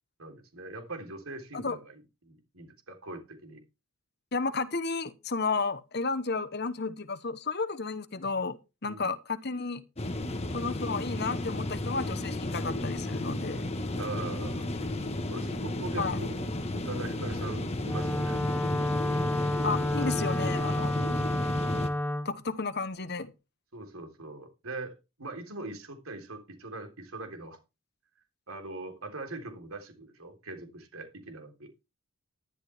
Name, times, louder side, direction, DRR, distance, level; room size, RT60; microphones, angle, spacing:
voice 1, 0.2-3.6 8.8-9.1 14.0-14.7 15.3-16.5 16.7-18.4 19.1-19.4 20.0-20.4 20.9-21.3 23.7-27.6 28.5-31.7, right 2 dB, 75° right, 3.7 m, -42 dB
voice 2, 4.3-8.6 8.8-9.8 10.5-13.7 16.0-16.2 19.6-21.0 22.2-23.3, left 4 dB, 50° left, 1.0 m, -32 dB
sound 1, 10.0-21.9, left 1 dB, 30° left, 1.4 m, -33 dB
Wind instrument woodwind instrument, 17.8-22.3, left 1 dB, 10° left, 0.8 m, -30 dB
12.0 x 11.5 x 3.5 m
head